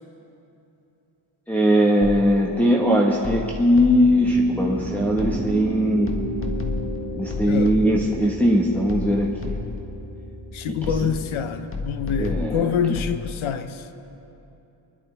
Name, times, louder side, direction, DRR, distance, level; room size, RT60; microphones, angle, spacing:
voice 1, 1.5-6.1 7.1-9.5 12.2-12.7, equal, 5° left, 1.3 m, -20 dB
sound 1, 2.0-2.5 3.2-4.3 5.2-5.7 6.1-8.2 8.9-9.9 10.8-11.4 11.7-13.2, left 3 dB, 25° left, 1.6 m, -31 dB
Piano, 4.1-11.6, right 1 dB, 50° left, 2.8 m, -34 dB
voice 2, 7.5-7.8 10.5-13.9, left 7 dB, 80° left, 0.8 m, -26 dB
25.5 x 11.5 x 3.4 m
wide cardioid pair, 115°, 47 cm